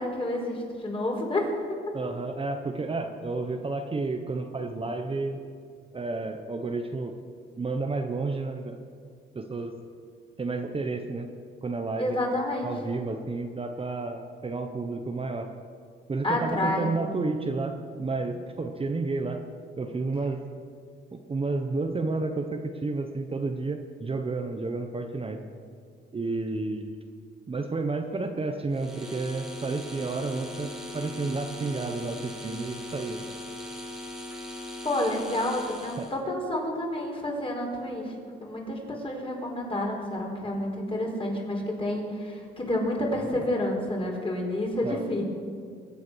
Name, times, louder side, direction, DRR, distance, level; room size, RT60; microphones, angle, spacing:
voice 1, 0.0-1.5 12.0-12.7 16.2-16.9 34.8-38.1 38.4-45.2, left 1 dB, 25° left, 0 dB, 4.6 m, -29 dB
voice 2, 1.9-5.4 5.9-7.1 7.6-8.8 9.3-9.7 10.4-11.3 11.6-12.2 12.6-15.5 16.1-19.4 19.8-20.4 21.1-25.4 26.1-26.9 27.5-33.2 36.0-36.1 44.8-45.0, right 3 dB, 30° right, 5 dB, 1.1 m, -31 dB
sound 1, 28.7-36.2, left 1 dB, 5° right, 2.4 m, -39 dB
23.0 x 8.5 x 6.3 m, 2.2 s
cardioid pair, 90°, 20 cm